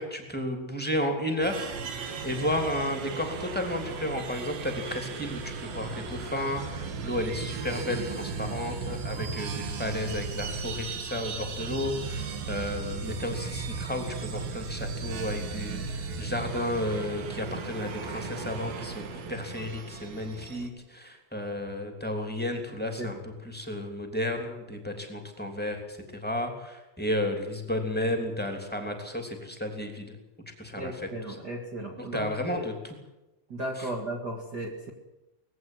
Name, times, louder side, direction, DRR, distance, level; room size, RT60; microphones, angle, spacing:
voice 1, 0.0-19.0 19.3-30.1 30.6-31.3 32.0-32.9 33.7-33.9, left 1 dB, 5° left, 4 dB, 1.8 m, -33 dB
sound 1, 1.4-20.7, right 5 dB, 60° right, 3.2 m, -36 dB
voice 2, 30.7-32.7 33.5-34.9, right 1 dB, 80° right, 2 dB, 0.9 m, -35 dB
19.5 x 15.5 x 9.3 m, 0.99 s
omnidirectional pair, 5.4 m